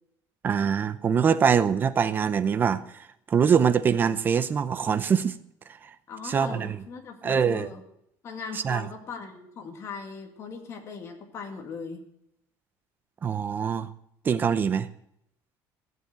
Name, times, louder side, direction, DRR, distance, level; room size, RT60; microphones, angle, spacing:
voice 1, 0.4-5.4 6.2-6.8 7.2-7.7 8.6-8.9 13.2-13.9 14.2-14.9, right 7 dB, 25° right, 13 dB, 0.7 m, -24 dB
voice 2, 6.1-7.8 8.2-12.1, left 5 dB, 35° left, 3 dB, 2.1 m, -39 dB
14.5 x 7.8 x 7.8 m, 0.75 s
cardioid pair, 165°, 8 cm